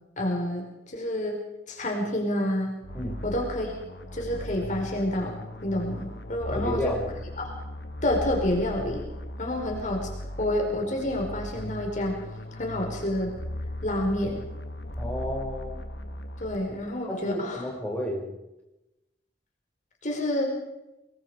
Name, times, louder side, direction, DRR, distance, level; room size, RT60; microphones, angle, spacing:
voice 1, 0.2-1.4 1.7-2.7 3.2-3.8 4.1-6.9 7.4-7.6 8.0-9.1 9.4-10.1 10.4-12.2 12.5-13.4 13.8-14.4 16.4-17.6 20.0-20.5, left 1 dB, 45° left, 1 dB, 4.9 m, -28 dB
sound 1, 2.8-17.0, left 1 dB, 70° left, 2.0 m, -38 dB
voice 2, 6.5-7.1 15.0-15.8 17.1-18.3, left 1 dB, 10° left, -2 dB, 6.2 m, -32 dB
26.5 x 21.5 x 5.0 m, 0.95 s
head